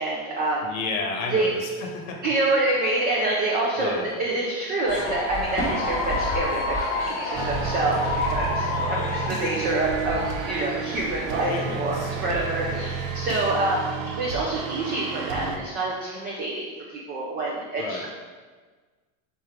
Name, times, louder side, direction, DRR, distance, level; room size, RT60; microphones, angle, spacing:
voice 1, 0.0-0.7 1.3-1.5 2.2-8.0 8.2-13.9 14.2-18.1, right 2 dB, 25° right, -4 dB, 0.4 m, -27 dB
voice 2, 0.6-2.2 3.7-4.2 8.8-9.2 11.5-13.0 17.8-18.1, left 3 dB, 90° left, 2 dB, 1.0 m, -33 dB
sound 1, 4.9-11.3, left 2 dB, 20° left, 1.0 m, -29 dB
sound 2, 7.3-15.6, right 6 dB, 70° right, 0.7 m, -32 dB
4.2 x 3.6 x 3.5 m, 1.4 s
supercardioid pair, 150°, 41 cm